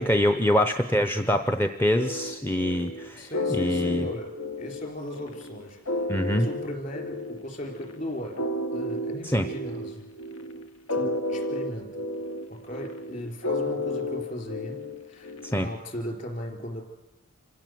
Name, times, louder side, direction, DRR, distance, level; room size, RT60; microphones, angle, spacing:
voice 1, 0.0-4.1 6.1-6.5 9.2-9.5 15.4-15.7, left 1 dB, 10° left, 8 dB, 0.6 m, -25 dB
voice 2, 1.0-1.4 3.2-8.4 8.7-10.1 10.9-12.0 12.5-14.8 15.1-16.8, equal, 40° left, 4 dB, 3.9 m, -37 dB
sound 1, 2.0-15.7, left 1 dB, 80° left, 1.6 m, -32 dB
26.5 x 16.0 x 7.8 m, 1.1 s
head